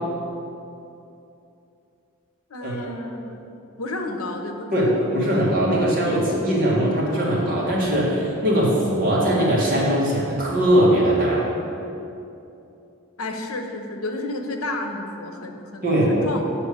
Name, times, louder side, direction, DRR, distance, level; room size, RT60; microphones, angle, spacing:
voice 1, 2.5-5.1 13.2-16.4, left 2 dB, 80° left, 4 dB, 0.8 m, -31 dB
voice 2, 4.7-11.4 15.8-16.1, right 1 dB, 45° right, -5 dB, 1.8 m, -20 dB
8.2 x 4.4 x 6.6 m, 2.8 s
head